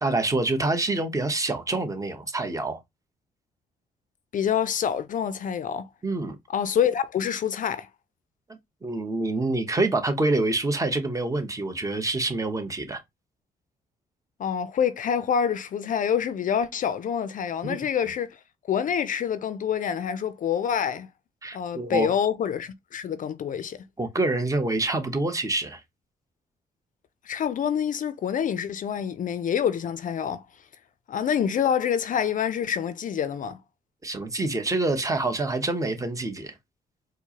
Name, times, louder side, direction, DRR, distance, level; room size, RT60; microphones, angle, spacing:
voice 1, 0.0-2.8 6.0-6.4 8.8-13.0 17.6-17.8 21.4-22.1 24.0-25.8 34.0-36.5, right 2 dB, 20° right, 0.9 m, -26 dB
voice 2, 4.3-5.8 6.5-7.9 14.4-18.4 18.7-21.1 21.5-23.8 27.3-30.4 31.1-33.6, left 8 dB, 50° left, 0.4 m, -26 dB
4.4 x 2.1 x 2.8 m
supercardioid pair, 65°, 17 cm